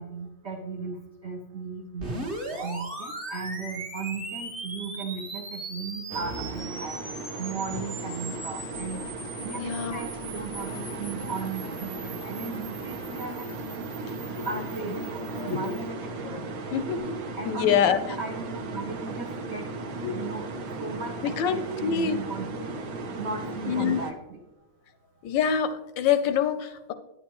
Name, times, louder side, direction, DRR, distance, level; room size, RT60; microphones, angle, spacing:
voice 1, 0.0-7.0 7.4-9.0 9.4-13.9 14.3-16.4 17.3-19.7 20.1-20.5 20.8-22.7 23.2-24.4, right 4 dB, 75° right, 2 dB, 0.6 m, -36 dB
sound 1, 2.0-15.8, right 2 dB, 30° right, 1.4 m, -40 dB
sound 2, 6.1-24.1, right 3 dB, 55° right, 1.1 m, -36 dB
voice 2, 9.6-10.0 14.3-14.5 15.4-15.7 16.7-17.0 17.5-18.0 20.0-20.1 21.4-22.2 23.7-24.0 25.2-26.9, left 8 dB, 75° left, 11 dB, 1.1 m, -25 dB
9.6 x 9.5 x 3.0 m, 1.0 s
omnidirectional pair, 2.3 m